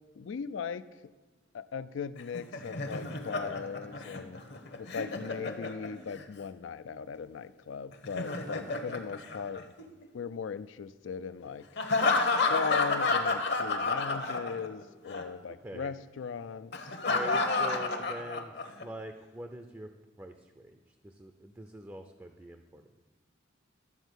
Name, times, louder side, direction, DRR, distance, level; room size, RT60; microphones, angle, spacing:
voice 1, 0.2-0.9 1.5-4.4 4.8-9.6 10.1-11.7 12.5-16.7, left 6 dB, 75° left, 14 dB, 0.4 m, -38 dB
Laughter, 2.2-6.2 7.9-10.1 11.8-14.8 15.1-15.2 16.7-18.8, left 3 dB, 60° left, 1.0 m, -31 dB
voice 2, 17.0-18.5 18.8-19.9 20.2-22.9, right 1 dB, 15° right, 6 dB, 0.5 m, -43 dB
12.5 x 4.5 x 8.0 m, 1.3 s
head